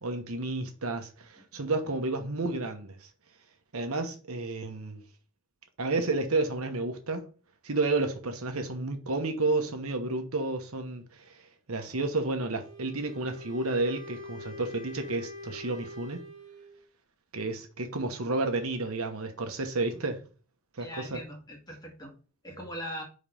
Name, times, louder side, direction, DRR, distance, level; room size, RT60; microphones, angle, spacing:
voice 1, 0.0-3.0 3.7-5.0 5.8-7.2 7.6-11.0 11.7-16.2 17.3-20.2 20.8-21.2, right 2 dB, 80° right, 1.1 m, -31 dB
Wind instrument woodwind instrument, 12.5-16.8, left 1 dB, 35° right, 1.8 m, -44 dB
voice 2, 20.8-22.1 22.4-23.0, equal, 20° left, 1.6 m, -40 dB
5.1 x 4.2 x 5.5 m
head